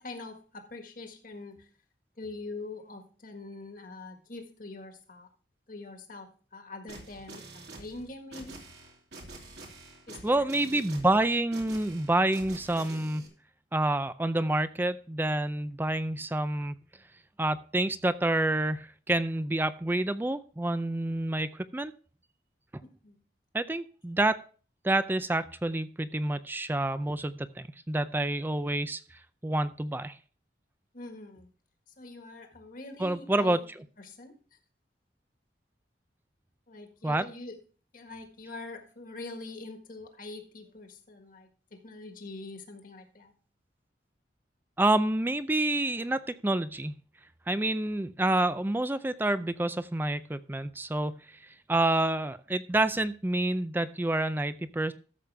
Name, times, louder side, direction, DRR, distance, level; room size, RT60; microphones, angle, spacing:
voice 1, 0.0-1.7 2.2-5.3 5.7-8.6 10.1-10.8 22.8-23.2 30.9-31.5 32.0-33.6 34.0-34.6 36.7-37.6 37.9-43.3, left 3 dB, 50° left, 5 dB, 1.7 m, -44 dB
sound 1, 6.9-13.3, right 2 dB, 65° right, 2.8 m, -47 dB
voice 2, 10.2-13.3 13.7-16.7 17.4-21.9 23.5-24.4 24.8-29.0 29.4-30.2 33.0-33.6 37.0-37.2 44.8-46.9 47.5-51.4 51.7-54.9, right 1 dB, 10° right, 13 dB, 0.4 m, -28 dB
13.5 x 6.8 x 3.4 m, 0.39 s
head